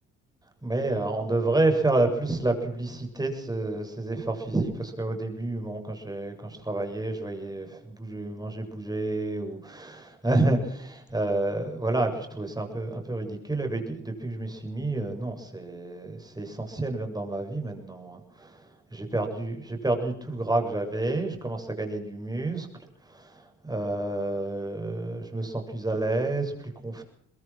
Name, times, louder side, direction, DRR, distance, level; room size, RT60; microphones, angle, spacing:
voice 1, 0.6-22.7 23.0-27.0, right 2 dB, 15° right, 4 dB, 7.7 m, -29 dB
23.5 x 22.0 x 6.2 m, 0.71 s
cardioid pair, 90°, 30 cm